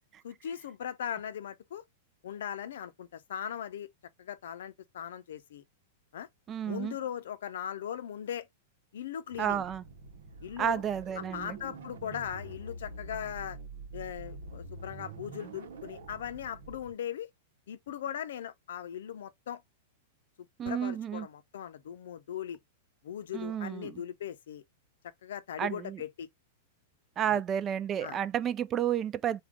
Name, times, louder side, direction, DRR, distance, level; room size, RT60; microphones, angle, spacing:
voice 1, 0.2-1.8 2.2-3.9 4.2-5.6 6.1-6.3 6.6-8.5 8.9-9.6 10.4-10.8 11.2-13.6 13.9-17.3 17.7-19.6 20.6-22.6 23.0-24.6 25.2-26.3 27.3-27.4 28.0-28.2, left 9 dB, 75° left, 0.5 m, -39 dB
voice 2, 6.5-6.9 9.4-9.8 10.6-11.6 20.6-21.3 23.3-23.9 25.6-26.0 27.2-29.4, right 9 dB, 30° right, 0.4 m, -31 dB
sound 1, 9.3-16.9, right 3 dB, 75° right, 0.8 m, -46 dB
3.5 x 2.3 x 3.5 m
hypercardioid pair, 115°, 0 cm